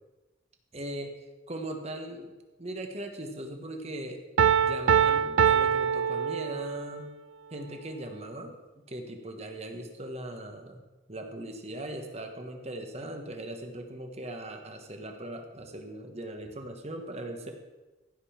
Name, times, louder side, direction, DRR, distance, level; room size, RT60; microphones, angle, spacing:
voice 1, 0.7-1.2 1.5-2.3 2.6-4.2 4.6-7.1 7.5-8.6 8.9-10.8 11.1-17.5, right 1 dB, 30° right, 4 dB, 1.3 m, -39 dB
Piano, 4.4-7.0, right 7 dB, 80° right, 0.4 m, -24 dB
15.5 x 5.4 x 5.8 m, 1.1 s
head